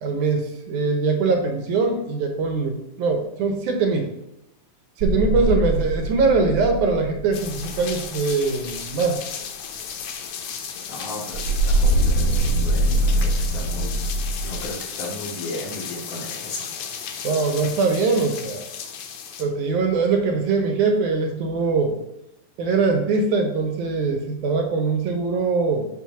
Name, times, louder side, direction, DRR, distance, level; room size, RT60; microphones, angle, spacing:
voice 1, 0.0-4.1 5.0-9.2 17.2-18.7 19.4-22.0 22.6-25.9, right 4 dB, 80° right, 4 dB, 2.4 m, -22 dB
sound 1, 5.0-8.6 11.3-14.6, right 1 dB, 60° right, 1.3 m, -23 dB
sound 2, 7.3-19.4, left 7 dB, 90° left, 1.2 m, -34 dB
voice 2, 10.9-14.0 14.4-16.7, left 1 dB, 55° left, -2 dB, 2.1 m, -35 dB
7.4 x 3.4 x 6.0 m, 0.84 s
omnidirectional pair, 3.5 m